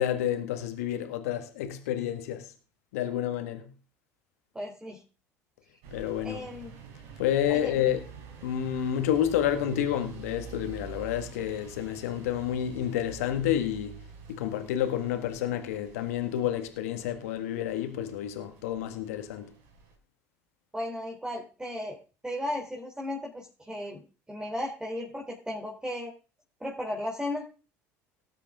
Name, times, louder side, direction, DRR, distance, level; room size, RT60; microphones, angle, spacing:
voice 1, 0.0-2.5 2.9-3.7 5.9-6.4 7.2-8.0 8.4-14.0 14.3-19.5, left 10 dB, 75° left, 1.8 m, -29 dB
voice 2, 4.5-5.0 6.2-6.7 7.5-7.9 20.7-22.0 22.2-26.1 26.6-27.4, left 1 dB, 10° right, 3.3 m, -35 dB
sound 1, 5.8-20.0, right 6 dB, 65° right, 4.0 m, -48 dB
18.5 x 8.3 x 3.7 m
hypercardioid pair, 65°, 8 cm